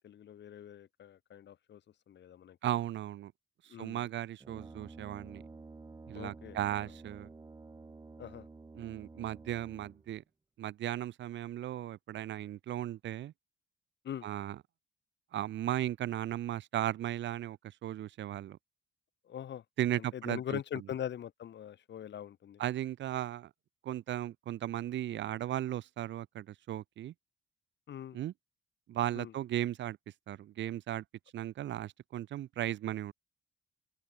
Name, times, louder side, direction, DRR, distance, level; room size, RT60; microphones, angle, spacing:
voice 1, 0.0-1.8 2.1-2.6 3.7-4.1 6.1-6.9 8.2-8.5 14.0-14.3 19.2-19.6 20.0-22.6 27.9-28.2 29.1-29.3, left 10 dB, 65° left, 2.6 m, -42 dB
voice 2, 2.6-3.3 3.6-5.4 6.1-7.3 8.7-10.2 10.6-13.3 14.2-14.6 15.3-18.6 19.8-20.6 22.6-23.5 23.8-27.1 28.1-28.3 28.9-30.0 30.3-31.0 31.3-33.1, right 12 dB, 65° right, 0.8 m, -36 dB
Brass instrument, 4.4-10.2, right 3 dB, 20° right, 0.9 m, -51 dB
open air
cardioid pair, 90°, 20 cm